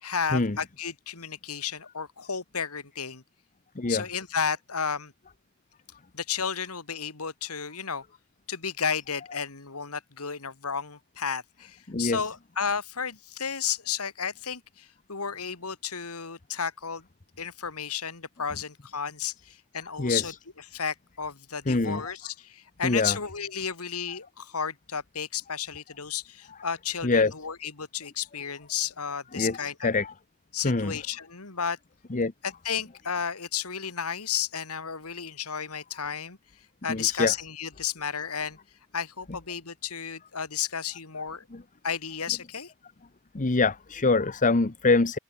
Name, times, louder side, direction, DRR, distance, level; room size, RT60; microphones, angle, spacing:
voice 1, 0.0-3.2 3.9-5.1 6.1-8.0 8.5-17.1 17.4-29.9 30.5-31.8 32.4-36.4 36.8-38.6 38.9-41.4 41.8-42.7, left 7 dB, 75° left, 2.3 m, -33 dB
voice 2, 11.9-12.2 20.0-20.3 21.7-22.1 22.8-23.2 27.0-27.3 29.3-30.1 30.6-31.0 32.1-32.3 36.9-37.3 41.5-41.6 43.3-45.2, left 3 dB, 35° left, 0.9 m, -25 dB
open air
head